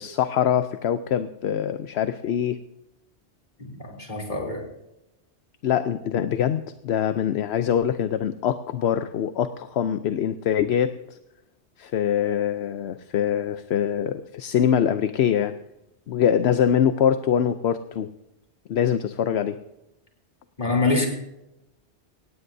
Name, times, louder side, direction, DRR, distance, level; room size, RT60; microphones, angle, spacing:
voice 1, 0.0-2.6 5.6-10.9 11.8-15.5 16.1-18.1 18.7-19.6, left 9 dB, 75° left, 10 dB, 0.9 m, -23 dB
voice 2, 3.6-4.6 20.6-21.1, left 3 dB, 45° left, 0 dB, 3.4 m, -25 dB
17.5 x 17.5 x 2.7 m, 0.90 s
omnidirectional pair, 1.1 m